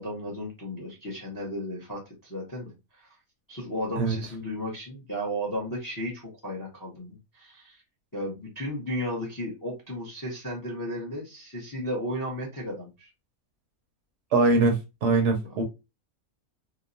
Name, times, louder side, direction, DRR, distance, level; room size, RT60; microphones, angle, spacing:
voice 1, 0.0-3.1 3.5-7.8 8.1-13.1 15.5-15.6, equal, 25° left, 0.4 m, -34 dB
voice 2, 14.3-15.6, right 3 dB, 65° right, 0.8 m, -22 dB
2.9 x 2.0 x 2.5 m
omnidirectional pair, 1.5 m